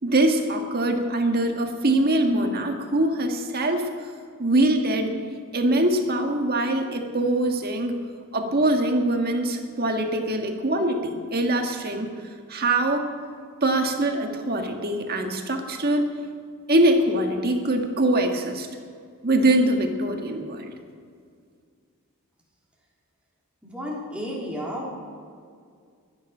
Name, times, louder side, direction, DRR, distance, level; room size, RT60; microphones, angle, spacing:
voice 1, 0.0-3.9 4.4-5.1 5.5-8.0 8.3-12.1 12.5-13.0 13.6-16.1 16.7-18.7 19.2-20.7, right 1 dB, 45° right, 4 dB, 1.6 m, -23 dB
voice 2, 23.6-24.9, equal, 5° right, -4 dB, 3.2 m, -32 dB
22.0 x 9.8 x 5.6 m, 2.2 s
head